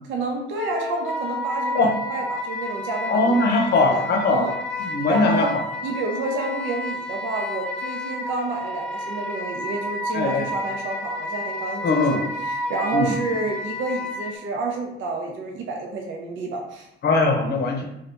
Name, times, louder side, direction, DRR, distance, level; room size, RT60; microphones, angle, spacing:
voice 1, 0.1-1.8 2.0-3.2 3.6-4.0 4.3-4.6 5.1-5.5 5.8-16.9, right 3 dB, 75° right, 1 dB, 0.5 m, -29 dB
Wind instrument woodwind instrument, 0.6-14.3, left 1 dB, 5° left, 0.5 m, -31 dB
voice 2, 3.1-4.4 4.8-5.5 10.1-10.5 11.8-12.2 12.9-13.1 17.0-17.8, left 3 dB, 55° left, 2 dB, 0.7 m, -20 dB
2.7 x 2.5 x 3.3 m, 0.83 s
cardioid pair, 90°, 20 cm